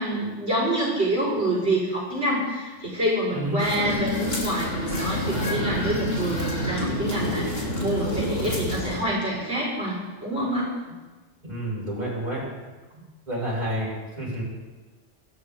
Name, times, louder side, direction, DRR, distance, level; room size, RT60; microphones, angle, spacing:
voice 1, 0.0-10.7, right 1 dB, 55° right, -7 dB, 5.6 m, -27 dB
voice 2, 3.3-3.6 11.4-12.5 12.9-14.4, right 1 dB, 35° right, -6 dB, 6.3 m, -30 dB
sound 1, 3.6-9.0, left 1 dB, 50° left, 3.5 m, -28 dB
25.0 x 13.0 x 3.8 m, 1.3 s
omnidirectional pair, 1.3 m